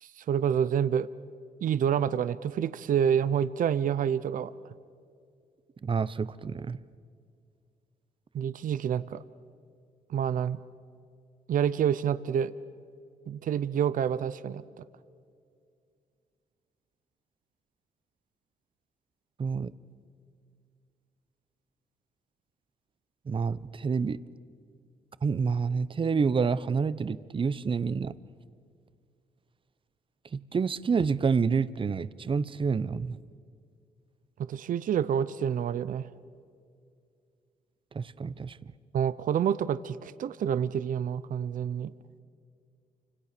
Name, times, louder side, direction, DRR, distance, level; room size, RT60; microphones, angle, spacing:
voice 1, 0.0-1.1 1.6-4.5 8.3-9.2 10.1-10.6 11.5-12.5 13.3-14.8 34.4-36.1 38.9-41.9, right 8 dB, 70° right, 16 dB, 0.7 m, -28 dB
voice 2, 5.8-6.8 19.4-19.7 23.3-24.2 25.2-28.1 30.3-33.2 37.9-38.6, right 5 dB, 35° right, 17 dB, 0.8 m, -28 dB
29.0 x 26.0 x 6.8 m, 2.3 s
cardioid pair, 100°, 14 cm